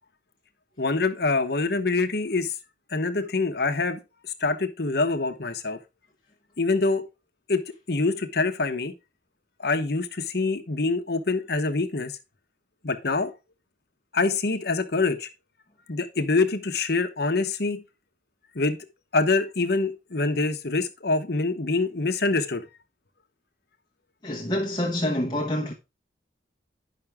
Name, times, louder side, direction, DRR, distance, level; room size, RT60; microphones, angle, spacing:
voice 1, 0.8-2.5 2.9-4.0 4.4-5.8 6.6-7.0 7.5-7.6 7.9-8.9 9.6-12.1 12.8-13.3 14.1-15.3 15.9-17.8 18.5-18.8 19.1-22.6, left 3 dB, 55° left, 1.0 m, -25 dB
voice 2, 24.2-25.7, left 1 dB, 25° left, 1.0 m, -27 dB
10.5 x 5.9 x 3.5 m
head